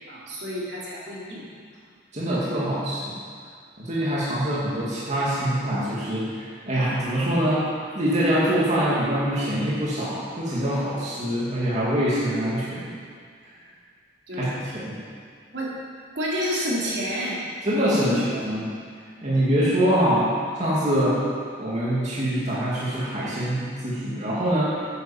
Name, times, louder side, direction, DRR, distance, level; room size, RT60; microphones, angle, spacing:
voice 1, 0.1-1.4 14.3-14.6 15.5-15.8 16.2-17.4 18.0-18.3, equal, 70° right, -6 dB, 3.6 m, -29 dB
voice 2, 2.1-3.2 3.8-7.6 7.9-12.8 13.4-13.5 14.4-14.5 14.7-15.0 17.6-18.6 19.2-20.3 20.6-21.2 21.6-24.7, equal, 40° right, -8 dB, 2.7 m, -24 dB
10.5 x 9.6 x 7.4 m, 2.1 s
head